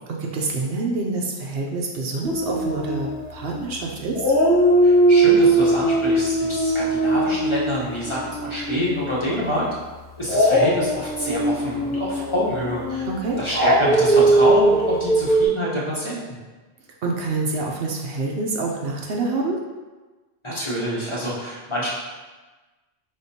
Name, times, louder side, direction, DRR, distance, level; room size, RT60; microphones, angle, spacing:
voice 1, 0.2-4.3 13.1-13.4 17.0-19.6, right 3 dB, 65° right, -1 dB, 0.8 m, -27 dB
Dog, 2.2-3.8 4.1-9.2 10.2-15.5, right 1 dB, 80° left, 2.0 m, -20 dB
voice 2, 4.8-9.6 10.2-13.0 13.4-16.2 20.4-21.9, equal, 30° left, -7 dB, 1.0 m, -27 dB
5.1 x 3.6 x 2.7 m, 1.2 s
omnidirectional pair, 1.1 m